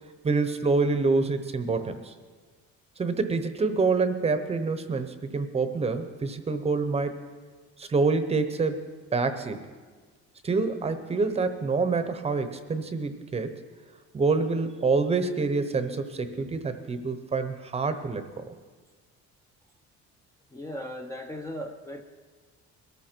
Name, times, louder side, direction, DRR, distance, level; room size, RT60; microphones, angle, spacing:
voice 1, 0.2-2.1 3.0-7.2 7.8-8.8 9.1-9.7 10.4-13.5 14.1-18.5, right 4 dB, 20° right, 10 dB, 0.9 m, -27 dB
voice 2, 20.5-22.0, equal, 10° left, 3 dB, 0.6 m, -37 dB
22.0 x 14.0 x 4.5 m, 1.4 s
cardioid pair, 160°, 29 cm